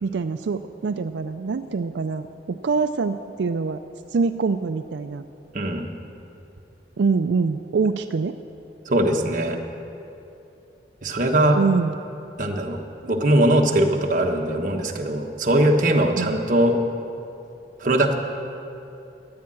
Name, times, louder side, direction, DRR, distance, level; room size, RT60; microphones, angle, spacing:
voice 1, 0.0-3.8 4.1-5.2 7.0-8.4 11.5-12.0 16.2-16.3, right 4 dB, 90° right, 8 dB, 0.4 m, -24 dB
voice 2, 5.5-5.8 8.9-9.6 11.0-11.6 12.4-12.8 13.0-16.7 17.8-18.2, right 1 dB, 50° right, 2 dB, 1.2 m, -20 dB
14.0 x 9.6 x 7.6 m, 2.8 s
head